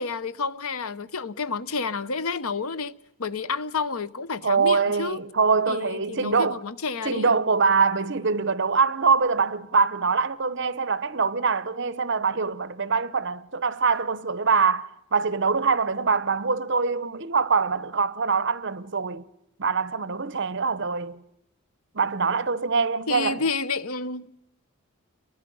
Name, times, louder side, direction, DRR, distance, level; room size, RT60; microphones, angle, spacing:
voice 1, 0.0-5.2 5.7-7.3 23.1-24.3, left 4 dB, 80° left, 1.0 m, -30 dB
voice 2, 4.4-6.6 7.0-19.3 19.6-21.2 21.9-23.4, right 5 dB, 55° right, 0.9 m, -24 dB
30.0 x 22.5 x 5.6 m
head